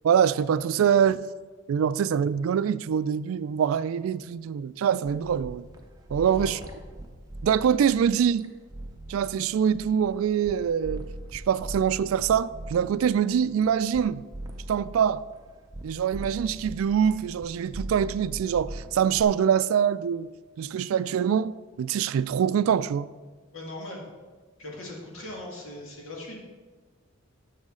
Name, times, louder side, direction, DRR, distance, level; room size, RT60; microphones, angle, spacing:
voice 1, 0.0-1.2 1.7-5.7 6.1-6.6 7.4-8.5 9.1-11.1 11.3-14.2 14.7-15.2 15.8-23.1, right 8 dB, 85° right, 0.3 m, -24 dB
sound 1, 5.0-10.5 10.8-14.0 14.3-15.8 16.1-17.5 17.7-19.2, right 1 dB, 20° right, 0.7 m, -40 dB
voice 2, 6.2-6.9 23.5-24.0 24.6-26.4, left 1 dB, 75° left, 2.1 m, -40 dB
10.5 x 7.1 x 3.7 m
head